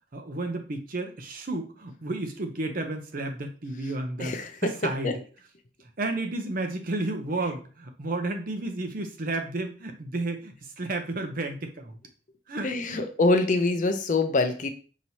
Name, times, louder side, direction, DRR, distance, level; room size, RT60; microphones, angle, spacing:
voice 1, 0.1-5.2 6.0-12.0 12.5-13.1, right 2 dB, 45° right, 5 dB, 0.7 m, -32 dB
voice 2, 4.2-4.5 5.0-5.1 12.6-14.7, left 3 dB, 40° left, 7 dB, 0.5 m, -24 dB
5.5 x 3.1 x 2.7 m, 0.37 s
head